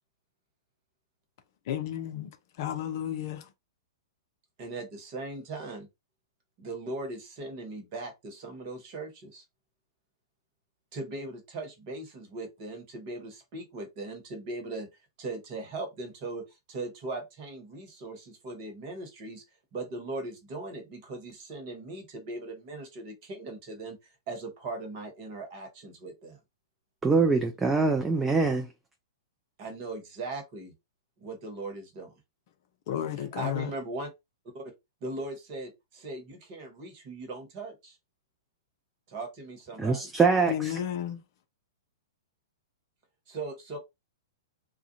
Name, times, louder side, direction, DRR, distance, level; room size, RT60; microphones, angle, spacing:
voice 1, 1.7-3.5 32.9-33.7 40.5-41.2, left 10 dB, 45° left, 0.5 m, -32 dB
voice 2, 4.6-5.9 6.6-9.4 10.9-14.9 15.2-19.4 19.7-24.0 24.3-26.4 29.6-30.7 31.2-32.1 33.2-34.1 34.5-34.7 35.0-38.0 39.1-40.1 43.3-43.8, right 2 dB, 40° right, 1.1 m, -39 dB
voice 3, 27.0-28.7 39.8-40.7, right 4 dB, 10° right, 0.4 m, -24 dB
2.4 x 2.1 x 2.7 m
figure-of-eight pair, 105°, 2 cm